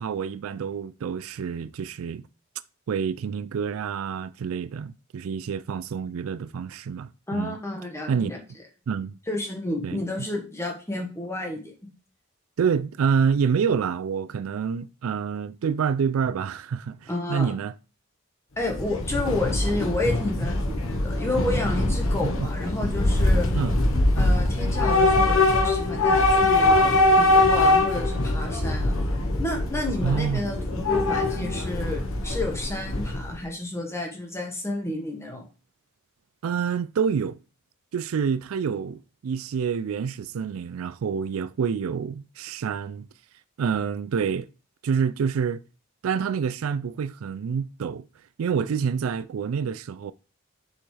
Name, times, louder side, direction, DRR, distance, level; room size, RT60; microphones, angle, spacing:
voice 1, 0.0-2.2 2.9-7.6 8.1-8.3 8.9-9.1 9.8-10.0 12.6-17.7 22.4-22.5 23.5-23.8 30.0-30.5 36.4-37.4 37.9-43.1 43.6-44.5 44.8-45.6 46.0-48.0 48.4-50.1, right 6 dB, 80° right, 0.4 m, -27 dB
voice 2, 7.3-8.4 9.3-11.7 17.1-17.5 18.6-23.5 24.2-26.8 27.2-29.0 29.4-35.4, left 2 dB, 15° left, 1.4 m, -31 dB
Train / Subway metro underground, 18.6-33.4, left 2 dB, 75° left, 1.2 m, -22 dB
7.0 x 5.6 x 3.3 m
head